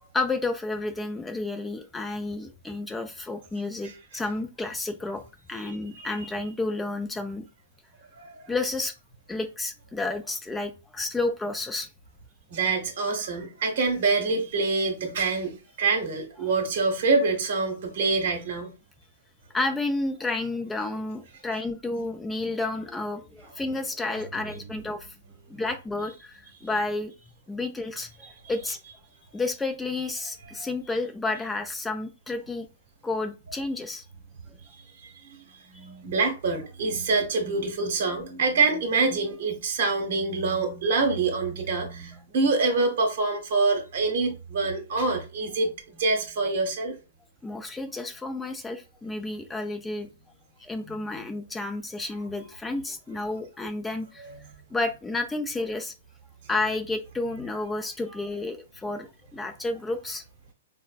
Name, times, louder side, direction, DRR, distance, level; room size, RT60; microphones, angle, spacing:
voice 1, 0.1-5.2 5.5-7.4 8.5-8.9 9.3-11.9 19.5-25.1 25.5-27.1 27.5-28.8 29.3-32.7 33.0-34.0 47.4-50.1 50.6-54.3 54.7-55.9 56.5-60.2, left 2 dB, 10° left, 0.4 m, -31 dB
voice 2, 5.7-6.3 8.2-8.5 12.5-18.7 24.4-24.7 30.6-30.7 35.3-47.0 50.8-50.9 54.2-54.4, right 3 dB, 60° right, 0.9 m, -26 dB
3.9 x 2.0 x 2.2 m
figure-of-eight pair, 110°, 0 cm